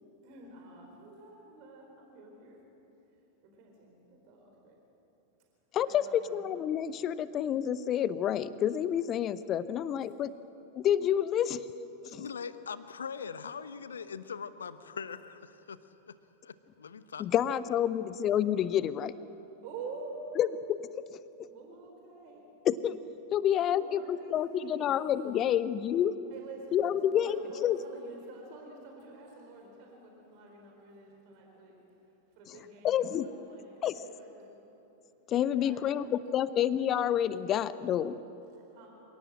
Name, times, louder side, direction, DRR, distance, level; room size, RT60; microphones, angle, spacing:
voice 1, 0.0-2.6 3.4-4.8 5.8-6.5 19.6-20.4 21.5-22.5 23.7-24.9 25.2-25.4 26.3-34.5 35.5-36.6 38.5-38.9, right 3 dB, 45° right, 1 dB, 4.4 m, -48 dB
voice 2, 5.7-10.3 10.8-11.7 12.0-12.3 17.2-19.1 20.4-20.5 20.8-21.5 22.6-23.0 23.3-26.1 26.7-27.8 32.8-33.3 33.8-33.9 35.3-38.2, left 10 dB, 30° left, 16 dB, 0.8 m, -29 dB
voice 3, 12.1-15.8 16.1-16.2 16.4-17.2, left 6 dB, 70° left, 13 dB, 1.0 m, -41 dB
27.5 x 18.0 x 7.7 m, 3.0 s
figure-of-eight pair, 90°, 0 cm